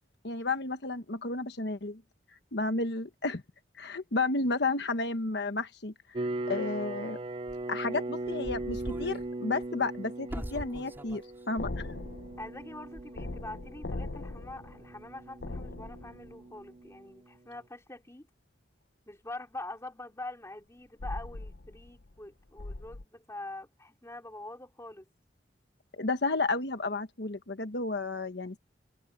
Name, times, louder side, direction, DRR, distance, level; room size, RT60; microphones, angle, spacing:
voice 1, 0.2-2.0 2.5-3.4 3.8-6.2 6.5-7.2 7.7-11.9 25.9-28.6, left 3 dB, 65° left, 1.3 m, -32 dB
sound 1, 6.1-17.2, right 2 dB, 30° right, 0.5 m, -39 dB
sound 2, 7.5-7.6 8.3-9.3 9.6-9.7 10.3-11.2 11.5-11.6 12.4-12.6 13.0-13.3, equal, 10° right, 4.3 m, -41 dB
sound 3, 11.6-16.6 21.0-22.3 22.6-23.0, left 2 dB, 90° left, 0.9 m, -40 dB
voice 2, 12.4-18.3 19.0-25.1, left 2 dB, 15° left, 2.9 m, -44 dB
head